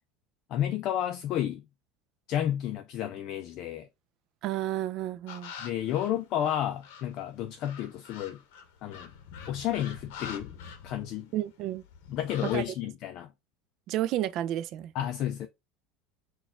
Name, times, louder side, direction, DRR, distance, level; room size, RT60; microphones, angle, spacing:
voice 1, 0.5-1.6 2.3-3.9 5.6-8.4 8.8-9.1 9.5-10.5 10.8-11.3 12.1-13.3 14.9-15.5, left 11 dB, 45° left, 0.3 m, -31 dB
voice 2, 4.4-5.5 11.3-11.8 12.4-12.6 13.9-14.9, right 13 dB, 45° right, 0.3 m, -31 dB
sound 1, 5.3-7.1 7.6-11.5 11.7-12.6, left 7 dB, 75° left, 0.7 m, -45 dB
4.1 x 2.3 x 3.5 m
supercardioid pair, 145°, 0 cm